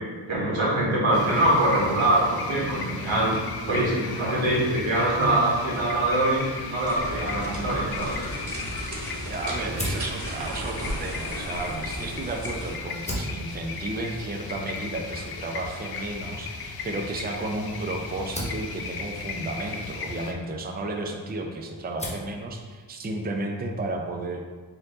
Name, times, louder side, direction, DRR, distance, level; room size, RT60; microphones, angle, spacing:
voice 1, 0.3-3.4 3.7-8.3, right 1 dB, 90° right, -6 dB, 1.4 m, -23 dB
sound 1, 1.1-20.3, left 4 dB, 55° left, 0.5 m, -36 dB
sound 2, 6.8-12.8, right 1 dB, 40° right, 1.0 m, -35 dB
voice 2, 8.8-24.4, right 2 dB, 20° right, 2 dB, 0.4 m, -33 dB
Fire, 9.7-12.3 12.8-21.4 21.7-22.4, equal, 15° left, 1.1 m, -38 dB
4.4 x 2.7 x 3.7 m, 1.4 s
wide cardioid pair, 60°, 46 cm